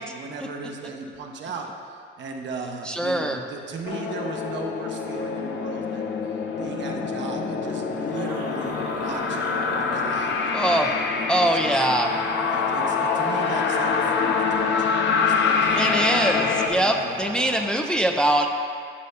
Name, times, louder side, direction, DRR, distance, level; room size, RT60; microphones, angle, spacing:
voice 1, 0.0-6.2 6.6-11.1 11.5-11.8 12.5-15.9 16.5-17.3, right 4 dB, 65° right, 2 dB, 0.8 m, -37 dB
voice 2, 2.9-3.4 10.5-10.9 11.3-12.1 15.7-18.5, right 1 dB, 5° left, 3 dB, 0.4 m, -22 dB
sound 1, 3.8-16.7, left 5 dB, 65° left, 0.6 m, -25 dB
sound 2, 7.9-11.3 11.7-14.6 15.5-17.7, right 2 dB, 50° right, 1.3 m, -39 dB
11.5 x 5.4 x 2.2 m, 2.2 s
cardioid pair, 90°, 20 cm